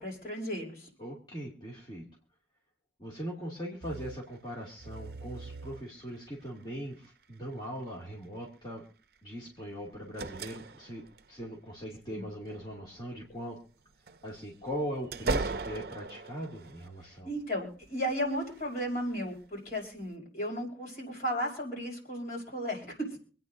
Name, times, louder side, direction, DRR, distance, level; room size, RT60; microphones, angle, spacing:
voice 1, 0.0-0.9 12.1-12.2 17.2-23.0, equal, 50° left, -3 dB, 5.8 m, -35 dB
voice 2, 1.0-2.1 3.0-8.8 9.2-11.0 11.3-13.6 14.2-17.3, equal, 25° left, -4 dB, 2.5 m, -40 dB
sound 1, 3.8-4.2 4.8-6.1 7.1-7.2 9.7-11.4 12.2-13.2 13.9-17.5 17.8-19.2 19.7-19.8, right 3 dB, 55° right, 0.6 m, -39 dB
27.0 x 9.4 x 2.7 m, 0.41 s
head